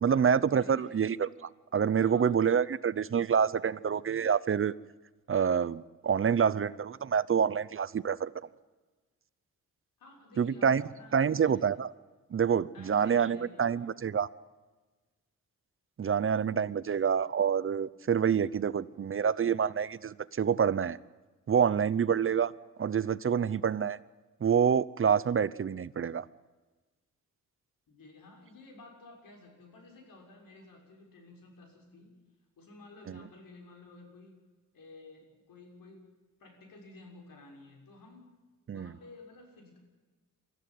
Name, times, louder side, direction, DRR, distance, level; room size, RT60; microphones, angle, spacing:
voice 1, 0.0-1.3 1.7-4.7 5.3-8.3 10.4-10.8 11.1-11.9 12.3-14.3 16.0-21.0 21.5-22.5 22.8-24.0 24.4-26.3 33.1-33.2 38.7-38.9, right 7 dB, 40° right, 18 dB, 0.7 m, -27 dB
voice 2, 0.6-1.1 2.0-2.4 10.0-11.7 12.7-13.9 16.9-17.0 27.9-32.2 32.6-34.4 34.7-36.1 36.4-38.3 38.7-39.8, left 3 dB, 85° left, 2 dB, 6.4 m, -53 dB
24.0 x 14.5 x 9.3 m, 1.3 s
wide cardioid pair, 120°, 33 cm